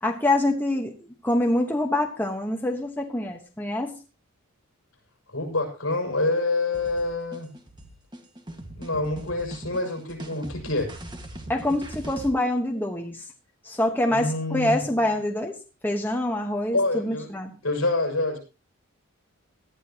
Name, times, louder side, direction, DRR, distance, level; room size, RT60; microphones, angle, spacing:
voice 1, 0.0-0.9 1.2-3.9 11.5-13.2 13.6-15.6 15.8-17.5, left 1 dB, 10° left, 2 dB, 1.2 m, -25 dB
voice 2, 5.3-7.5 8.8-10.9 14.1-14.8 16.7-17.3 17.6-18.4, left 2 dB, 65° left, 2 dB, 6.0 m, -26 dB
sound 1, 6.7-12.3, right 1 dB, 20° right, 1.7 m, -40 dB
18.5 x 13.0 x 3.0 m, 0.33 s
head